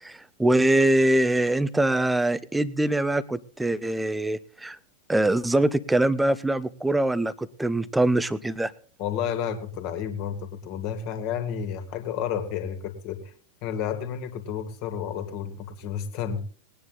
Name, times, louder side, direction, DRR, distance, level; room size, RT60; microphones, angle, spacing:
voice 1, 0.0-4.8 5.1-8.7, right 1 dB, 5° right, 17 dB, 0.9 m, -23 dB
voice 2, 9.0-13.2 13.6-16.4, left 8 dB, 45° left, 7 dB, 2.6 m, -31 dB
20.5 x 9.9 x 3.9 m, 0.42 s
figure-of-eight pair, 90°, 0 cm